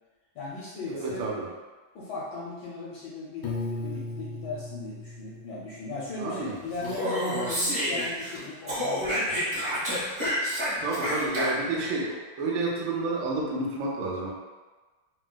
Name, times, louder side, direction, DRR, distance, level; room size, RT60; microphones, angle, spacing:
voice 1, 0.3-1.2 1.9-9.7, left 2 dB, 70° left, -6 dB, 1.1 m, -37 dB
voice 2, 0.9-1.4 6.2-6.6 10.8-14.3, right 2 dB, 75° right, -4 dB, 1.4 m, -30 dB
Piano, 3.4-6.4, left 2 dB, 90° left, 1.4 m, -37 dB
Speech, 6.7-8.4 8.7-11.8, equal, 30° right, 0.5 m, -29 dB
4.5 x 2.0 x 2.2 m, 1.3 s
omnidirectional pair, 2.2 m